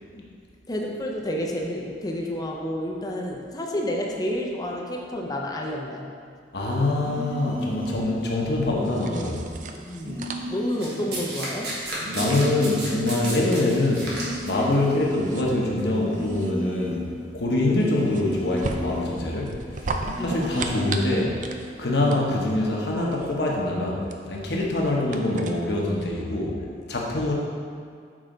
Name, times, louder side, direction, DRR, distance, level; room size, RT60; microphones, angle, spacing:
voice 1, 0.7-6.1 9.8-11.7 20.2-20.6, equal, 20° left, 0 dB, 0.6 m, -30 dB
voice 2, 6.5-9.4 12.1-14.2 14.4-17.1 17.3-19.9 20.2-21.4 21.8-24.0 24.3-26.6 26.9-27.3, left 2 dB, 65° left, -3 dB, 1.1 m, -24 dB
sound 1, 7.0-8.1 10.0-11.1 12.0-13.1 14.0-15.1 15.9-17.1 18.0-19.1 19.9-21.1 21.9-22.3, left 1 dB, 90° right, 1.5 m, -34 dB
sound 2, 8.8-26.1, right 3 dB, 45° right, 0.4 m, -38 dB
Domestic sounds home sounds, 10.8-14.7 15.6-15.8, right 2 dB, 65° right, 1.5 m, -33 dB
6.4 x 4.7 x 3.9 m, 2.2 s
head